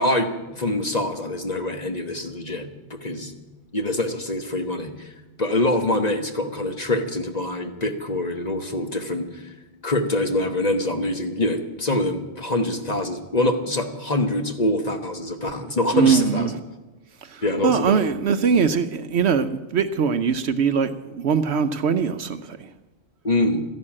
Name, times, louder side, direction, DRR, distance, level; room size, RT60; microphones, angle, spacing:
voice 1, 0.0-3.3 3.7-5.1 5.4-9.4 9.8-16.5 17.4-18.0 23.2-23.6, left 1 dB, 35° left, 5 dB, 1.2 m, -25 dB
voice 2, 15.9-16.6 17.2-22.6, right 6 dB, 65° right, 11 dB, 0.9 m, -22 dB
13.0 x 11.0 x 8.7 m, 1.1 s
omnidirectional pair, 1.3 m